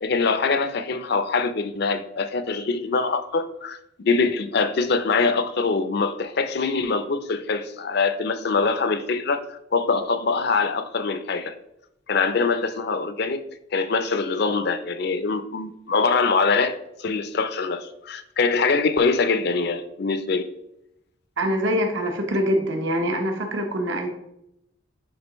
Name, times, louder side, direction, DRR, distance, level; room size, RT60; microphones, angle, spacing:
voice 1, 0.0-3.8 4.0-11.5 12.1-13.4 13.7-20.5, left 4 dB, 55° left, 10 dB, 0.5 m, -23 dB
voice 2, 21.4-24.1, equal, 75° right, 3 dB, 1.0 m, -24 dB
8.6 x 3.7 x 3.1 m, 0.81 s
head